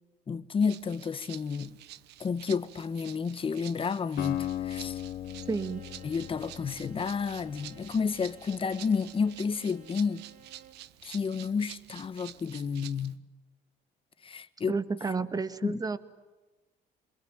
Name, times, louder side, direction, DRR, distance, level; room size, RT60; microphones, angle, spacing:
voice 1, 0.3-1.8 2.2-5.0 6.0-10.2 11.0-13.2 14.2-14.8 15.6-15.8, left 5 dB, 30° left, 1.4 m, -31 dB
Rattle (instrument), 0.6-13.1, right 14 dB, 80° right, 1.1 m, -49 dB
Acoustic guitar, 4.2-8.3, left 12 dB, 60° left, 1.1 m, -37 dB
Bowed string instrument, 5.2-10.9, right 7 dB, 55° right, 3.9 m, -56 dB
voice 2, 5.5-5.9 14.7-16.0, right 4 dB, 20° right, 1.8 m, -31 dB
28.0 x 22.0 x 9.1 m
cardioid pair, 110°, 17 cm